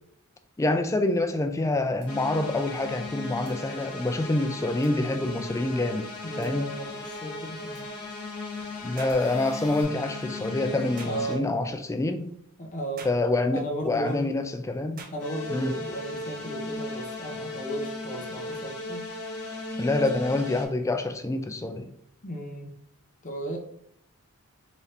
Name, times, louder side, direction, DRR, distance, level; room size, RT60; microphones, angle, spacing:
voice 1, 0.6-6.1 6.4-6.7 8.8-12.3 13.0-15.1 15.5-15.7 19.8-21.9, left 2 dB, 15° left, 0.3 m, -27 dB
sound 1, 2.0-2.1 3.5-3.6 4.8-4.9 6.4-6.5 7.7-7.8 9.1-9.8, right 2 dB, 90° right, 1.5 m, -47 dB
sound 2, 2.1-11.4 15.2-20.6, left 2 dB, 85° left, 1.1 m, -37 dB
voice 2, 6.2-7.8 11.0-11.5 12.6-13.1 13.5-14.5 15.1-19.1 20.0-20.1 22.2-22.7 23.2-23.6, right 1 dB, 35° left, 0.8 m, -35 dB
sound 3, 9.0-9.2 11.0-11.2 13.0-13.2 15.0-15.2, right 4 dB, 40° right, 0.7 m, -43 dB
4.0 x 2.7 x 3.3 m
head